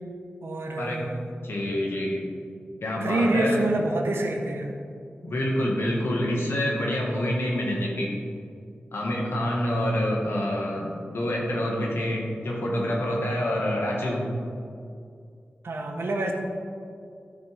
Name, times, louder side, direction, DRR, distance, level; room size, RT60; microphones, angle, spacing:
voice 1, 0.4-1.3 3.0-4.7 15.6-16.3, right 2 dB, 75° right, 2 dB, 1.1 m, -26 dB
voice 2, 1.4-2.3 2.8-3.6 5.2-8.2 8.9-14.2, left 1 dB, 80° left, -2 dB, 2.0 m, -27 dB
13.0 x 6.0 x 3.7 m, 2.4 s
wide cardioid pair, 65°, 4 cm